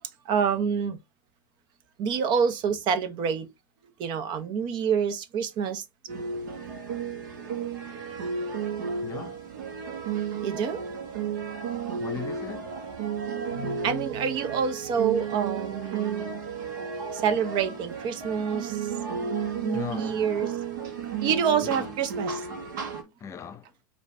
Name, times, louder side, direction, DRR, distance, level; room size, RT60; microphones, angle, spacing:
voice 1, 0.2-1.0 2.0-3.5 4.0-5.8 10.4-10.8 13.8-16.4 17.1-20.5 21.2-22.4, right 7 dB, 45° right, 0.9 m, -27 dB
sound 1, 6.1-23.0, right 6 dB, 65° right, 1.5 m, -33 dB
voice 2, 9.0-9.4 12.0-12.8 19.7-20.2 21.6-21.9 23.2-23.7, left 9 dB, 30° left, 0.6 m, -38 dB
4.9 x 2.8 x 3.2 m
hypercardioid pair, 90°, 11 cm